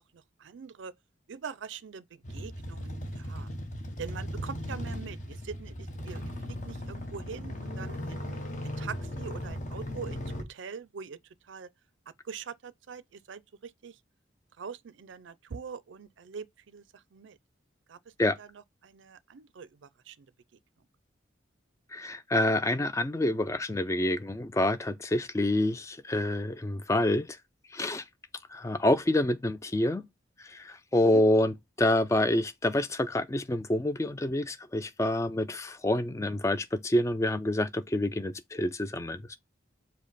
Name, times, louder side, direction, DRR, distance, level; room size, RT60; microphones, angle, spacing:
voice 1, 0.1-0.9 1.3-3.5 4.0-8.2 8.6-11.2 11.5-11.7 12.2-14.0 14.6-17.4 17.9-18.0 18.4-20.3 31.1-31.3, right 6 dB, 75° right, 0.4 m, -43 dB
sound 1, 2.2-10.4, equal, 40° left, 0.9 m, -37 dB
voice 2, 21.9-27.3 27.7-28.0 28.5-30.0 30.4-39.4, left 1 dB, 15° left, 0.3 m, -27 dB
5.1 x 2.1 x 4.0 m
head